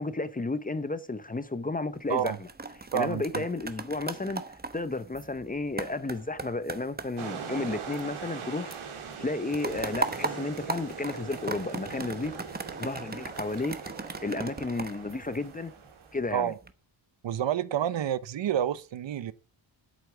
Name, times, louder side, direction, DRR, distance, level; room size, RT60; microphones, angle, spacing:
voice 1, 0.0-2.5 2.9-4.4 4.7-8.7 9.2-12.3 12.8-13.8 14.2-15.7 16.1-16.5, left 3 dB, 15° left, 0.8 m, -32 dB
sound 1, 1.9-8.4 8.7-15.9 16.4-16.7, right 3 dB, 20° right, 1.0 m, -38 dB
voice 2, 2.9-3.4 16.3-16.5 17.2-19.3, right 10 dB, 65° right, 0.8 m, -29 dB
sound 2, 7.2-16.2, right 6 dB, 80° right, 2.7 m, -41 dB
8.3 x 8.2 x 8.0 m
wide cardioid pair, 110°, 48 cm